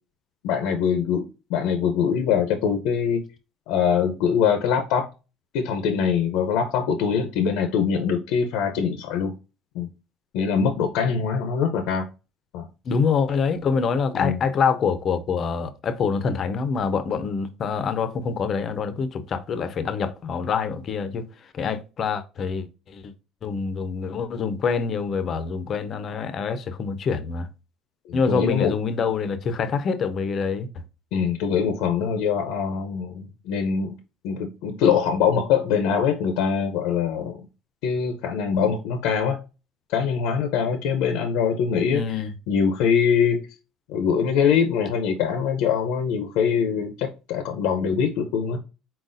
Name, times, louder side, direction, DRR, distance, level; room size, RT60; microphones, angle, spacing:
voice 1, 0.4-3.2 3.7-5.1 5.5-9.3 9.7-9.9 10.3-12.1 12.5-12.7 14.1-14.4 28.1-28.7 31.1-34.0 34.2-37.5 37.8-39.4 39.9-43.5 43.9-48.6, left 7 dB, 85° left, 0.6 m, -23 dB
voice 2, 12.9-21.2 21.5-22.7 22.9-23.1 23.4-27.5 28.1-30.7 41.9-42.3, left 5 dB, 30° left, 0.4 m, -25 dB
4.2 x 3.9 x 2.5 m
cardioid pair, 175°, 0 cm